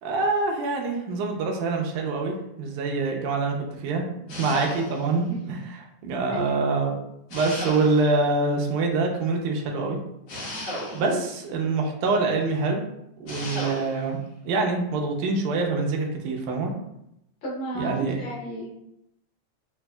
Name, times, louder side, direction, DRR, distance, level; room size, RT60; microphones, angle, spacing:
voice 1, 0.0-4.0 4.4-7.0 7.3-10.0 10.9-12.9 13.2-14.2 14.4-16.7 17.8-18.2, right 3 dB, 85° right, 1 dB, 2.1 m, -25 dB
sound 1, 4.3-5.2 7.3-8.3 10.3-11.3 13.3-14.1, left 1 dB, 65° left, 1.2 m, -34 dB
voice 2, 17.4-18.7, right 1 dB, 85° left, -4 dB, 1.1 m, -33 dB
5.8 x 2.7 x 2.2 m, 0.81 s
omnidirectional pair, 3.5 m